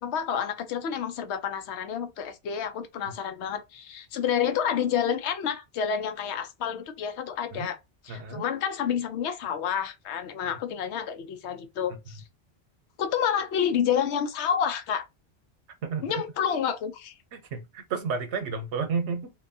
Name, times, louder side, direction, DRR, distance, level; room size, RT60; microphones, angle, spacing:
voice 1, 0.0-7.8 8.0-12.2 13.0-15.0 16.0-17.1, left 8 dB, 85° left, 0.9 m, -29 dB
voice 2, 8.1-8.4 15.8-16.0 17.3-19.3, right 5 dB, 85° right, 0.9 m, -31 dB
2.9 x 2.2 x 2.6 m
omnidirectional pair, 1.1 m